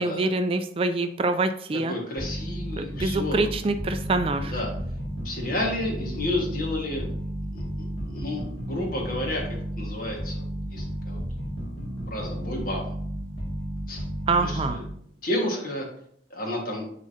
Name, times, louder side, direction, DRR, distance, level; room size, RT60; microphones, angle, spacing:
voice 1, 0.0-1.9 2.8-4.5 14.3-14.8, right 3 dB, 30° right, 8 dB, 0.3 m, -25 dB
voice 2, 1.9-3.5 4.4-4.7 5.2-7.1 7.5-10.4 10.7-11.2 12.1-12.9 13.9-14.1 14.4-14.8 15.2-15.9 16.3-16.8, left 1 dB, 50° left, 0 dB, 1.5 m, -31 dB
sound 1, 2.2-15.1, equal, 70° left, 1.9 m, -33 dB
9.7 x 3.8 x 2.7 m, 0.68 s
head